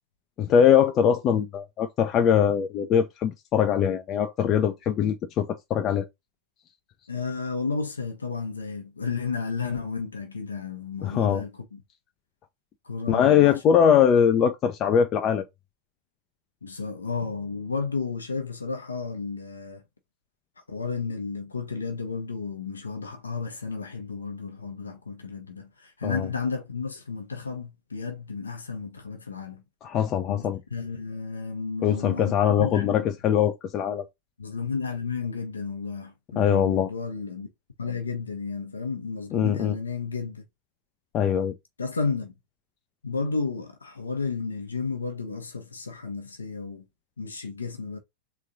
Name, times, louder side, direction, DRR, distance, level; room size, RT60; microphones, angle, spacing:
voice 1, 0.4-6.1 11.0-11.4 13.1-15.4 26.0-26.3 29.8-30.6 31.8-34.0 36.4-36.9 39.3-39.8 41.1-41.5, left 8 dB, 35° left, 0.5 m, -22 dB
voice 2, 7.1-11.8 12.8-13.6 16.6-19.8 20.7-29.6 30.3-32.3 32.6-33.1 34.4-37.5 37.8-40.4 41.8-42.3 43.0-46.8 47.2-48.0, left 4 dB, 75° left, 0.9 m, -32 dB
3.7 x 3.1 x 3.8 m
figure-of-eight pair, 90°, 0 cm